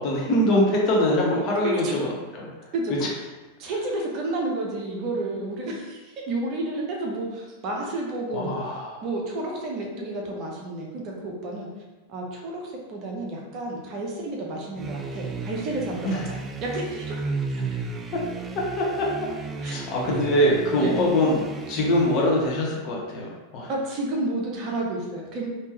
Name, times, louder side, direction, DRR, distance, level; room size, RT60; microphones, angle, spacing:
voice 1, 0.0-2.5 8.3-8.9 16.0-16.2 18.8-19.1 19.6-21.4 21.7-23.7, left 1 dB, 40° left, -2 dB, 0.9 m, -23 dB
voice 2, 3.6-8.5 9.0-11.7 12.1-16.3 16.6-17.2 17.5-17.8 19.6-19.8 20.1-20.2 20.8-20.9 23.7-25.5, right 2 dB, 40° right, -1 dB, 0.8 m, -31 dB
sound 1, 14.7-22.6, right 3 dB, 20° right, 0.3 m, -34 dB
3.5 x 2.8 x 3.0 m, 1.2 s
figure-of-eight pair, 90°, 0 cm